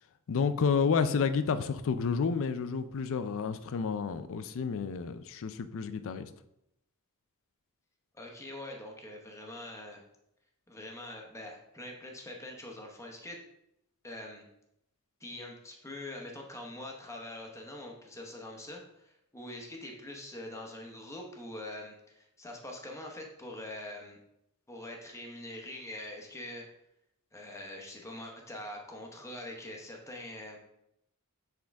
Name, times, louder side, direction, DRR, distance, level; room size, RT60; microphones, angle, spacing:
voice 1, 0.3-6.3, left 5 dB, 60° left, 0.4 m, -30 dB
voice 2, 8.1-10.0 10.7-13.4 14.0-14.4 15.2-24.2 24.7-26.7 27.3-30.6, left 1 dB, 15° left, 0.9 m, -44 dB
7.1 x 3.7 x 3.5 m
head